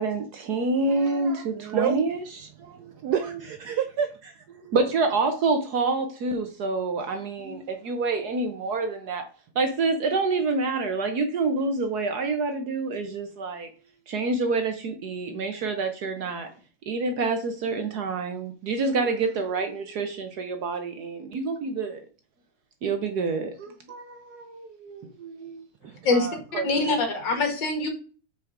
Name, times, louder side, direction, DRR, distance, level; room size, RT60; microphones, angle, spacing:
voice 1, 0.0-2.9 4.5-9.3 9.5-13.7 14.1-16.5 16.9-22.0 22.8-25.6, right 3 dB, 60° right, 1.2 m, -27 dB
voice 2, 1.5-2.0 2.5-4.4 25.8-26.9, right 8 dB, 85° right, 0.9 m, -30 dB
voice 3, 26.5-27.9, left 3 dB, 60° left, 2.1 m, -24 dB
6.0 x 4.8 x 4.8 m
omnidirectional pair, 2.3 m